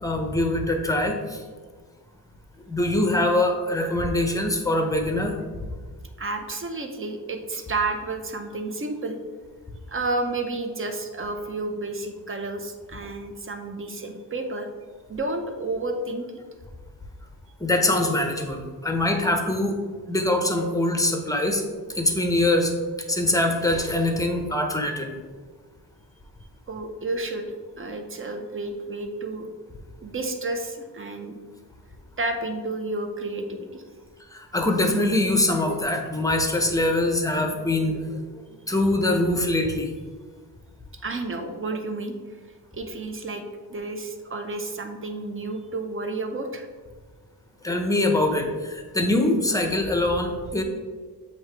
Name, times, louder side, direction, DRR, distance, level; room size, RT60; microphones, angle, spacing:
voice 1, 0.0-1.4 2.7-5.5 17.6-19.8 20.1-21.6 21.9-22.7 23.1-25.1 34.3-38.3 38.7-39.9 47.6-50.6, left 1 dB, 10° left, 3 dB, 0.7 m, -23 dB
voice 2, 6.2-9.2 9.9-14.7 15.1-16.2 26.7-29.5 30.0-31.4 32.2-33.8 41.0-42.4 42.7-46.7, right 2 dB, 30° right, 5 dB, 0.6 m, -31 dB
7.7 x 2.9 x 4.5 m, 1.5 s
wide cardioid pair, 125°, 40 cm